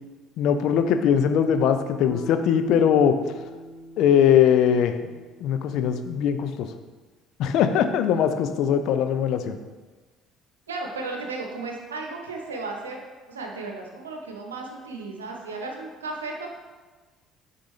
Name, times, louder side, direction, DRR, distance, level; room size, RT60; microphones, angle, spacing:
voice 1, 0.4-3.2 4.0-5.0 5.4-6.7 7.4-9.6, left 8 dB, 60° left, 9 dB, 0.5 m, -21 dB
Bass guitar, 2.1-6.5, left 1 dB, 10° left, 1.8 m, -43 dB
voice 2, 10.7-13.0 13.3-16.5, right 3 dB, 85° right, 1 dB, 0.8 m, -34 dB
9.5 x 3.9 x 3.2 m, 1.3 s
figure-of-eight pair, 55°, 0 cm